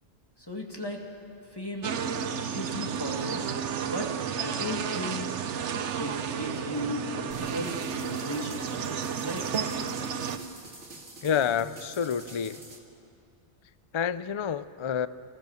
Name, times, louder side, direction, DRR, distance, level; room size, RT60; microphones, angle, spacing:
voice 1, 0.5-1.0 1.5-1.9 2.5-3.5 3.8-5.3 6.0-9.5, left 1 dB, 20° left, 1 dB, 2.0 m, -36 dB
sound 1, 1.8-10.4, right 7 dB, 85° right, 1.1 m, -32 dB
sound 2, 7.3-12.8, right 2 dB, 60° right, 2.3 m, -46 dB
voice 2, 11.2-12.6 13.9-15.1, left 8 dB, 55° left, 15 dB, 0.3 m, -28 dB
27.0 x 15.0 x 7.0 m, 2.6 s
omnidirectional pair, 1.2 m